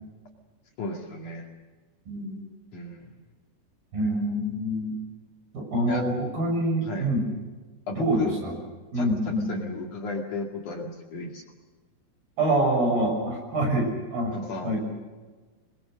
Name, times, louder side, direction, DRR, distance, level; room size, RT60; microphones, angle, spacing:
voice 1, 0.8-1.5 2.7-3.2 5.9-6.0 6.8-7.1 7.9-8.3 8.9-11.4 14.3-14.8, left 3 dB, 55° left, 1 dB, 3.3 m, -34 dB
voice 2, 2.1-2.5 3.9-4.9 5.5-7.2 7.9-8.5 8.9-9.5 12.4-14.3 14.6-14.8, right 1 dB, 60° right, 2 dB, 8.3 m, -26 dB
27.5 x 21.5 x 6.5 m, 1.3 s
omnidirectional pair, 4.8 m